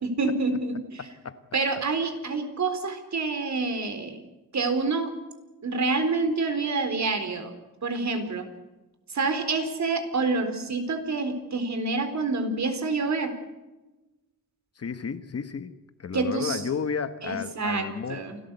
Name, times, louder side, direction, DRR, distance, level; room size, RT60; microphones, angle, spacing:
voice 1, 0.0-1.0 1.5-4.2 4.5-5.1 5.6-7.5 7.8-8.5 9.1-13.3 16.1-16.6 17.2-18.4, right 3 dB, 55° right, 7 dB, 4.2 m, -27 dB
voice 2, 1.0-1.4 14.8-18.3, left 6 dB, 45° left, 11 dB, 1.4 m, -33 dB
28.5 x 13.5 x 8.2 m, 1.1 s
wide cardioid pair, 110°, 34 cm